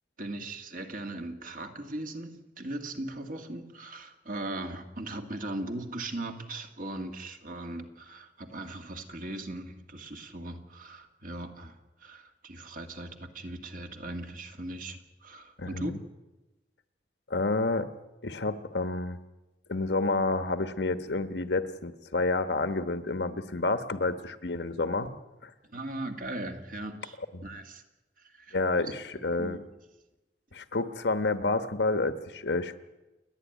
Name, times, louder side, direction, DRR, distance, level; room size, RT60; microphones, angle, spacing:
voice 1, 0.2-11.8 12.0-15.9 25.7-27.8 28.2-28.6 29.2-29.6, right 1 dB, 50° right, 5 dB, 2.0 m, -39 dB
voice 2, 15.6-16.0 17.3-17.9 18.2-19.2 19.7-25.5 27.3-27.4 28.5-29.6 30.5-32.8, left 3 dB, 75° left, 10 dB, 1.2 m, -29 dB
29.5 x 11.0 x 9.3 m, 1.1 s
head